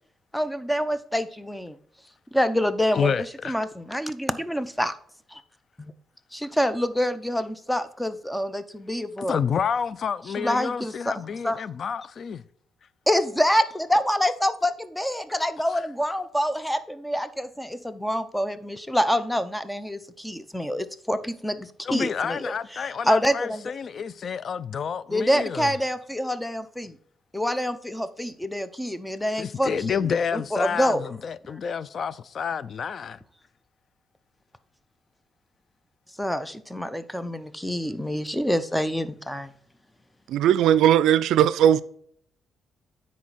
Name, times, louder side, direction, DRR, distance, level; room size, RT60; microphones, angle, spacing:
voice 1, 0.3-1.8 2.3-3.1 3.4-4.9 5.3-5.4 5.8-5.9 6.3-9.4 10.4-11.6 13.1-23.7 25.1-27.0 27.3-31.1 36.2-39.5, equal, 5° left, 0.6 m, -26 dB
voice 2, 2.9-3.6 9.2-12.4 21.8-25.7 29.4-33.2, left 6 dB, 50° left, 0.4 m, -29 dB
voice 3, 40.3-41.8, right 10 dB, 80° right, 0.4 m, -18 dB
9.8 x 4.3 x 4.1 m
cardioid pair, 90°, 0 cm